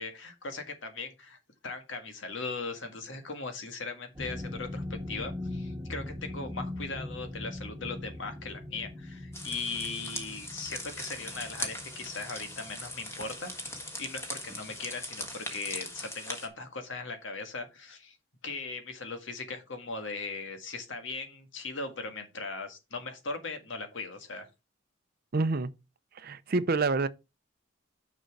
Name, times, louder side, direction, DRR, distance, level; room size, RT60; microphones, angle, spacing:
voice 1, 0.0-1.4 1.6-18.1 18.4-24.5, left 3 dB, 75° left, 1.8 m, -39 dB
sound 1, 4.1-14.8 15.1-15.5 15.9-16.0, left 1 dB, 10° right, 1.5 m, -41 dB
sound 2, 9.3-16.5, left 1 dB, 15° left, 1.5 m, -40 dB
voice 2, 25.3-25.7 26.2-27.1, right 3 dB, 50° right, 0.6 m, -27 dB
6.6 x 6.0 x 4.6 m
head